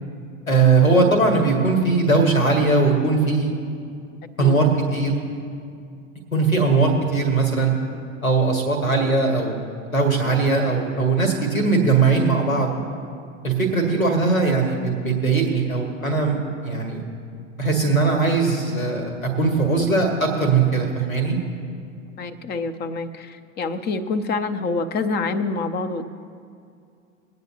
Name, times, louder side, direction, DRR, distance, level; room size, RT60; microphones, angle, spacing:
voice 1, 0.5-3.5 4.4-5.1 6.3-7.7 8.2-9.6 9.9-12.7 13.4-17.0 17.6-21.4, right 3 dB, 85° left, 3 dB, 1.8 m, -20 dB
voice 2, 13.8-14.3 22.2-26.1, left 3 dB, 25° left, 11 dB, 0.6 m, -27 dB
22.0 x 9.4 x 2.8 m, 2.4 s
figure-of-eight pair, 80°, 40 cm